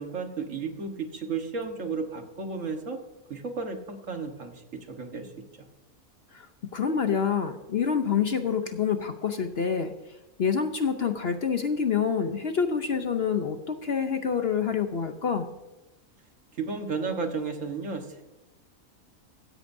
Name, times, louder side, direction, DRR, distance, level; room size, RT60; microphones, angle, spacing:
voice 1, 0.0-3.0 3.3-4.6 4.9-5.3 16.6-18.2, right 4 dB, 60° right, 4 dB, 1.7 m, -33 dB
voice 2, 6.7-9.9 10.4-15.5, left 6 dB, 55° left, 7 dB, 0.8 m, -27 dB
16.0 x 14.0 x 2.7 m, 1.1 s
omnidirectional pair, 1.5 m